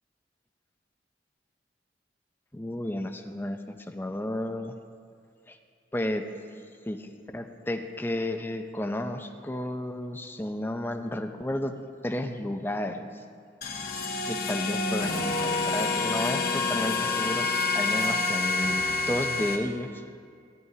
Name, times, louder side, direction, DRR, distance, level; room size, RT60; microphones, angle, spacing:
voice 1, 2.5-4.7 5.5-5.6 5.9-6.2 6.9-11.7 12.0-13.2 14.2-17.5 17.7-20.0, left 1 dB, 10° left, 6 dB, 0.5 m, -32 dB
sound 1, 13.6-19.6, left 3 dB, 55° left, 1.3 m, -27 dB
17.0 x 10.5 x 2.8 m, 2.3 s
head